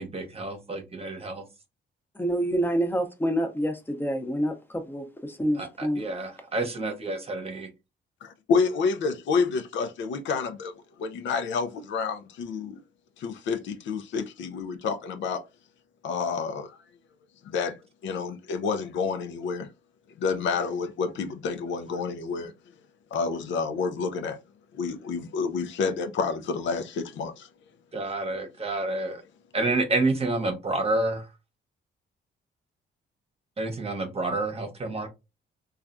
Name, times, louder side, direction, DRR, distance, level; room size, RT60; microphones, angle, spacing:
voice 1, 0.0-1.4 5.6-7.7 27.9-29.2 29.5-31.3 33.6-35.1, right 2 dB, 30° right, 0.9 m, -29 dB
voice 2, 2.2-6.0, equal, 10° left, 0.7 m, -27 dB
voice 3, 8.2-10.7 11.0-12.8 13.2-15.4 16.0-16.8 17.4-17.8 18.0-19.7 20.2-22.5 23.1-24.4 24.7-27.5, left 5 dB, 70° left, 0.5 m, -29 dB
3.2 x 2.4 x 2.5 m
cardioid pair, 90°, 20 cm